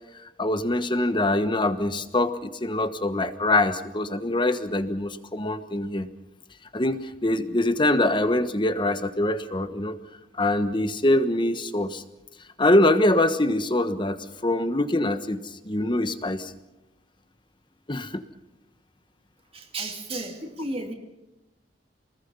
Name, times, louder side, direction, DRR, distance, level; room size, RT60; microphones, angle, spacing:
voice 1, 0.1-6.1 6.7-10.0 10.3-12.0 12.6-16.5 17.9-18.2, left 1 dB, 25° left, 10 dB, 1.3 m, -24 dB
voice 2, 19.5-20.9, right 2 dB, 30° right, 3 dB, 2.5 m, -33 dB
28.0 x 20.5 x 5.6 m, 0.98 s
head